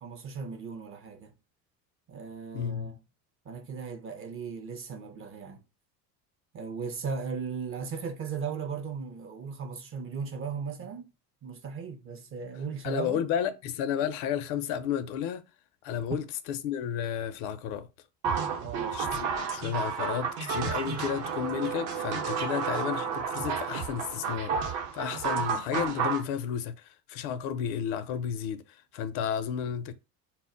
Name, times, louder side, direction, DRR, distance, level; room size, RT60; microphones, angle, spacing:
voice 1, 0.0-1.3 2.1-3.0 3.5-5.6 6.5-11.1 11.4-13.2 16.1-16.2 18.6-19.0, right 5 dB, 30° right, 0.4 m, -37 dB
voice 2, 2.5-3.0 12.8-15.4 15.8-17.9 18.9-29.9, left 8 dB, 70° left, 0.5 m, -32 dB
sound 1, 18.2-26.2, right 6 dB, 60° right, 0.7 m, -31 dB
2.1 x 2.0 x 3.7 m
supercardioid pair, 85°, 47 cm